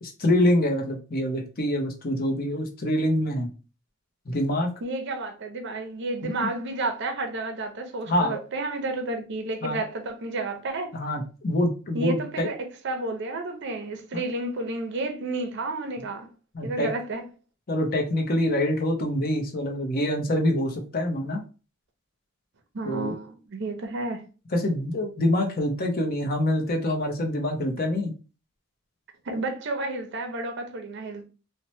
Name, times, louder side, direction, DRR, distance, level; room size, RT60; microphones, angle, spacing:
voice 1, 0.0-3.5 4.3-4.7 6.2-6.3 8.1-8.4 9.6-9.8 10.9-12.5 16.5-16.9 17.7-21.4 22.8-23.1 24.5-28.1, left 1 dB, 45° left, 0.6 m, -25 dB
voice 2, 4.8-11.0 11.9-12.6 12.8-16.3 16.6-17.2 22.7-24.2 29.3-31.2, right 2 dB, 55° right, 0.6 m, -31 dB
2.9 x 2.1 x 3.0 m
head